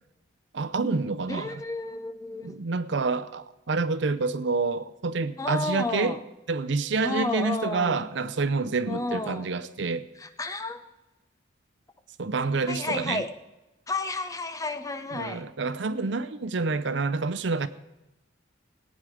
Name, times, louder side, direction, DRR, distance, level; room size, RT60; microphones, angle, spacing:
voice 1, 0.5-1.6 2.4-6.2 6.5-10.1 12.2-13.2 15.1-17.7, right 4 dB, 65° right, 0.6 m, -28 dB
voice 2, 1.3-2.6 5.4-6.2 7.0-8.0 8.9-9.5 10.2-10.8 12.7-13.3 13.9-15.4, left 2 dB, 15° left, 0.7 m, -32 dB
18.0 x 9.2 x 4.9 m
head